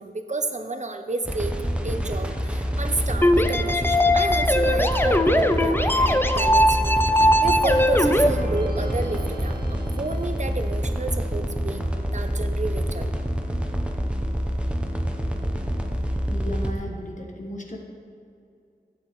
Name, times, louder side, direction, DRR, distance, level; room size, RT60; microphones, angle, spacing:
voice 1, 0.0-1.5 1.8-11.8 12.1-13.1, right 3 dB, 45° right, 6 dB, 0.7 m, -31 dB
sound 1, 1.3-16.7, equal, 5° right, 0.9 m, -27 dB
sound 2, 3.2-8.3, left 1 dB, 15° left, 0.5 m, -20 dB
sound 3, 8.0-10.8, right 1 dB, 85° right, 1.3 m, -38 dB
voice 2, 16.3-17.8, equal, 50° left, 1 dB, 1.3 m, -34 dB
12.0 x 8.0 x 3.2 m, 2.5 s
wide cardioid pair, 45°, 16 cm